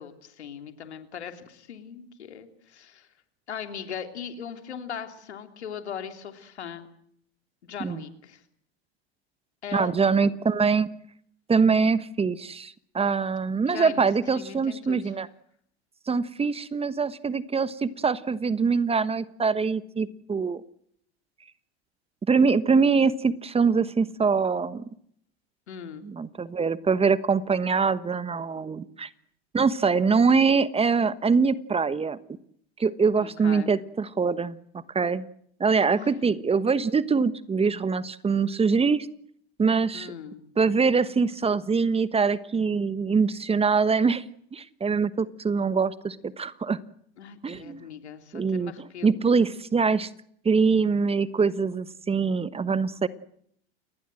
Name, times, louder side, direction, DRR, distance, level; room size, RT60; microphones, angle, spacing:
voice 1, 0.0-3.1 3.5-6.9 7.6-8.4 9.6-10.4 13.7-15.1 25.7-26.0 33.2-33.7 35.9-36.1 39.9-40.4 47.2-49.1, left 8 dB, 90° left, 7 dB, 3.4 m, -39 dB
voice 2, 9.7-10.9 11.5-15.3 16.1-20.6 22.3-24.8 26.0-29.1 29.5-32.2 32.8-34.6 34.9-35.2 35.6-39.1 39.6-40.1 40.6-44.2 44.5-46.8 47.4-47.8 48.3-48.7 49.0-50.1 50.4-53.1, right 5 dB, 20° right, 15 dB, 1.2 m, -23 dB
29.0 x 20.0 x 7.8 m, 0.67 s
hypercardioid pair, 95°, 32 cm